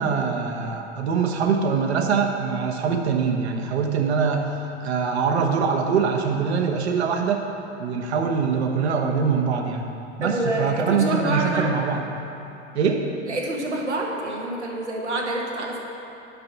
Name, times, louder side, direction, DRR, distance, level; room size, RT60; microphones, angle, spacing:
voice 1, 0.0-7.5 7.8-9.9 10.2-12.0 12.7-13.0, right 5 dB, 70° right, 3 dB, 1.1 m, -23 dB
voice 2, 10.2-11.7 13.2-15.8, right 2 dB, 90° right, 0 dB, 1.4 m, -27 dB
8.9 x 6.0 x 5.8 m, 3.0 s
figure-of-eight pair, 85°, 34 cm